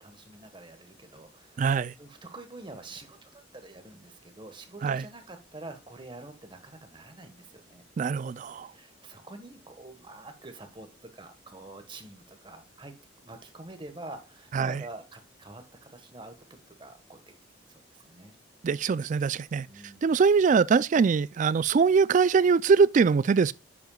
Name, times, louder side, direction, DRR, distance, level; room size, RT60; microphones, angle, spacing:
voice 1, 0.0-7.8 8.7-12.9 13.2-16.3 16.7-17.3 17.7-18.4 19.6-20.1, right 2 dB, 25° right, 1.3 m, -46 dB
voice 2, 1.6-1.9 4.8-5.0 8.0-8.7 14.5-14.8 18.6-19.7 20.0-23.5, right 5 dB, 40° right, 0.3 m, -22 dB
10.5 x 7.6 x 2.3 m
head